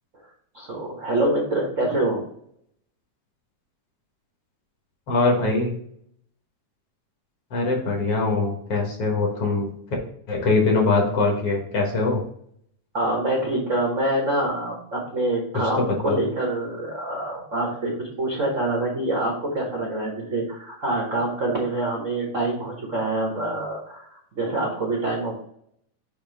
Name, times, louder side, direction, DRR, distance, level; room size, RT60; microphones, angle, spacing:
voice 1, 0.5-2.2 12.9-25.3, right 1 dB, 65° right, -2 dB, 0.7 m, -26 dB
voice 2, 5.1-5.7 7.5-9.7 10.3-12.2 15.5-16.2, left 3 dB, 55° left, 0 dB, 1.9 m, -22 dB
7.0 x 2.8 x 5.4 m, 0.66 s
omnidirectional pair, 3.5 m